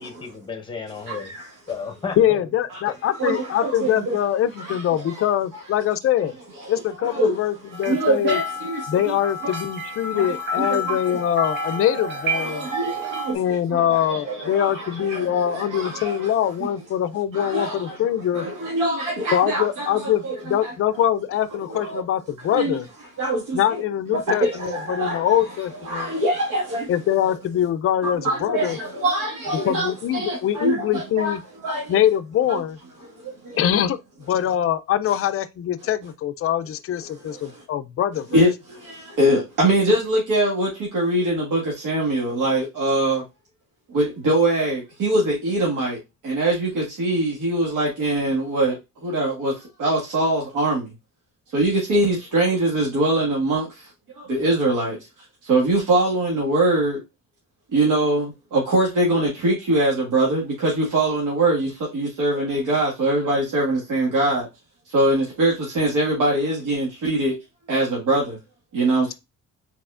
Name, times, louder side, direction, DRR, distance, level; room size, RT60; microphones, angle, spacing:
voice 1, 0.0-1.3 1.7-2.5, left 5 dB, 15° left, 0.9 m, -33 dB
voice 2, 1.0-1.5 2.7-2.8 3.2-4.2 4.6-5.2 6.6-7.4 7.9-9.2 9.4-9.5 10.1-11.0 11.5-16.3 17.3-18.0 18.3-20.7 21.7-22.0 22.5-22.7 23.2-23.6 24.1-25.4 25.8-26.9 27.2-27.3 28.0-31.4 31.6-32.0 32.5-32.6 33.0-33.6 37.2-37.6 38.3-43.2 43.9-50.9 51.5-53.9 54.1-57.0 57.7-64.5 64.9-67.4 67.7-68.4 68.7-69.1, right 1 dB, 90° right, 1.7 m, -23 dB
voice 3, 2.2-6.3 6.7-8.4 8.9-12.7 13.3-18.4 19.3-22.9 23.5-26.1 26.9-28.8 29.6-31.4 31.9-32.8 33.6-34.0 34.3-38.5, left 10 dB, 45° left, 0.4 m, -23 dB
sound 1, 7.7-13.3, equal, 35° right, 0.8 m, -30 dB
4.6 x 4.1 x 2.4 m
cardioid pair, 160°, 31 cm